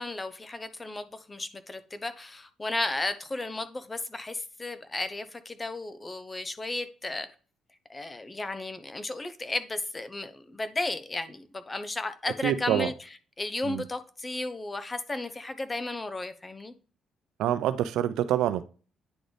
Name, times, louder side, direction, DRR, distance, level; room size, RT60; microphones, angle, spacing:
voice 1, 0.0-7.3 7.9-16.7, left 2 dB, 20° left, 0.9 m, -34 dB
voice 2, 12.4-12.9 13.7-13.8 17.4-18.6, right 11 dB, 85° right, 0.5 m, -26 dB
9.8 x 3.9 x 3.4 m
cardioid pair, 90°, 0 cm